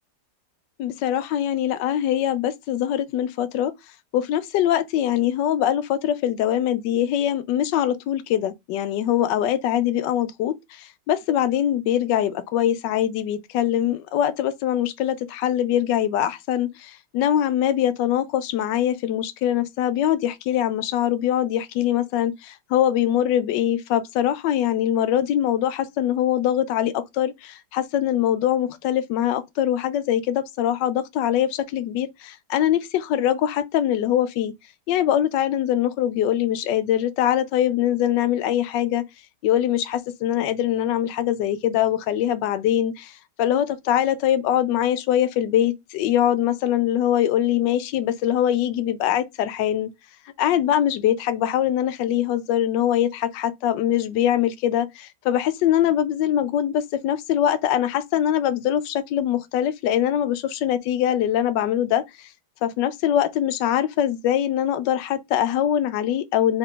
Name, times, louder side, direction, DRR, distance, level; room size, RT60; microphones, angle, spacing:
voice 1, 0.8-3.7 4.1-34.5 34.9-39.0 39.4-49.9 50.4-62.3 62.6-66.6, left 11 dB, 85° left, 1.2 m, -23 dB
3.5 x 3.2 x 3.6 m
omnidirectional pair, 1.9 m